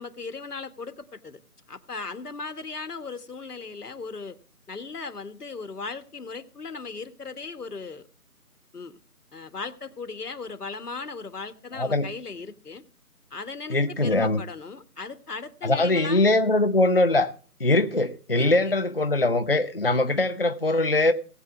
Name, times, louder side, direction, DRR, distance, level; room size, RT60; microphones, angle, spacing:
voice 1, 0.0-1.4 1.7-4.4 4.7-8.1 8.7-9.0 9.3-12.8 13.3-16.3 18.4-18.7, left 4 dB, 85° left, 1.6 m, -37 dB
voice 2, 11.7-12.1 13.7-14.4 15.6-17.3 17.6-21.1, left 2 dB, 40° left, 0.6 m, -22 dB
19.0 x 8.0 x 3.7 m
figure-of-eight pair, 175°, 45 cm